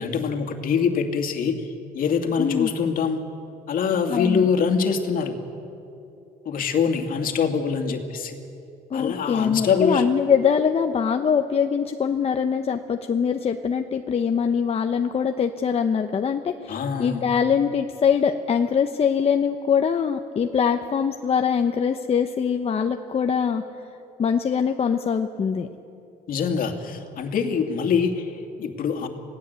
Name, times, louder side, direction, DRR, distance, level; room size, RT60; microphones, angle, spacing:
voice 1, 0.0-1.7 1.9-3.2 3.7-5.4 6.4-8.4 8.9-10.1 16.7-17.2 26.3-29.1, left 6 dB, 55° left, 5 dB, 2.6 m, -24 dB
voice 2, 2.4-2.7 4.1-4.5 8.9-23.6 24.2-25.7, left 7 dB, 35° left, 5 dB, 1.0 m, -23 dB
27.5 x 18.5 x 8.3 m, 2.8 s
cardioid pair, 110°, 17 cm